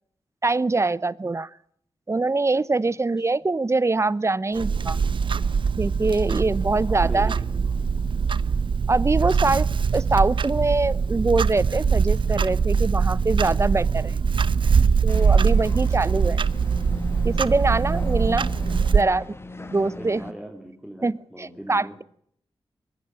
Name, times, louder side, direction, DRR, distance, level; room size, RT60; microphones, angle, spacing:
voice 1, 0.4-1.5 2.1-5.0 5.8-7.3 8.9-9.7 9.9-14.1 15.0-16.4 17.2-18.5 18.9-19.3 19.7-20.2 21.0-22.0, right 3 dB, 30° right, 20 dB, 0.8 m, -23 dB
Clock, 4.6-19.0, right 5 dB, 65° right, 0.8 m, -22 dB
voice 2, 6.9-7.9 19.9-22.0, right 1 dB, 5° right, 1 dB, 3.5 m, -40 dB
sound 1, 15.1-20.3, left 1 dB, 25° left, 1.9 m, -37 dB
22.5 x 14.5 x 8.9 m, 0.66 s
cardioid pair, 70°, 9 cm